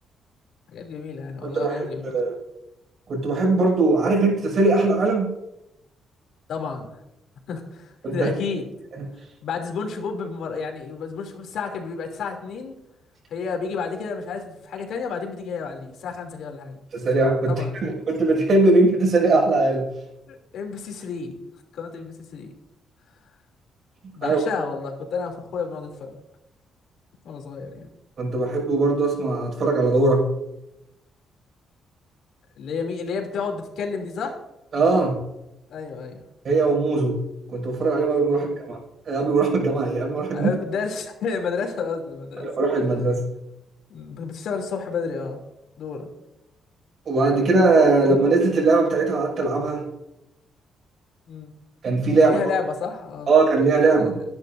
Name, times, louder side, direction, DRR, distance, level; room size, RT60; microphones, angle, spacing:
voice 1, 0.7-2.2 6.5-7.0 7.5-8.7 9.4-12.8 13.3-16.8 17.5-17.9 20.3-21.4 21.7-22.5 24.1-26.2 27.2-27.9 32.6-34.4 35.7-36.2 38.3-38.5 40.3-42.5 43.9-45.4 45.8-46.1 51.3-51.5 52.2-53.4 53.9-54.2, left 5 dB, 75° left, 2 dB, 2.8 m, -31 dB
voice 2, 1.4-1.8 2.1-2.3 3.1-5.3 8.0-8.3 16.9-19.9 24.2-24.4 28.2-30.3 34.7-35.2 36.4-37.2 37.5-38.8 39.1-40.5 42.4-43.2 47.1-49.8 51.8-52.4 53.3-54.1, right 3 dB, 55° right, 0 dB, 6.1 m, -20 dB
24.0 x 10.5 x 2.6 m, 0.88 s
cardioid pair, 90°, 0 cm